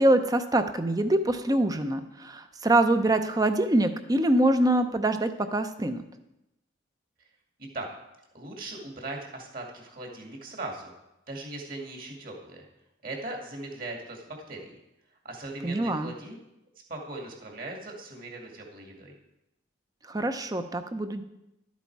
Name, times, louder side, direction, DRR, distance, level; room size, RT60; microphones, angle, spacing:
voice 1, 0.0-6.0 15.6-16.1 20.1-21.2, right 1 dB, 20° right, 9 dB, 0.6 m, -24 dB
voice 2, 8.3-10.9 11.3-12.6 13.0-14.7 15.2-16.4 16.9-19.1, right 2 dB, 45° right, 1 dB, 2.2 m, -39 dB
12.0 x 8.3 x 4.7 m, 0.89 s
head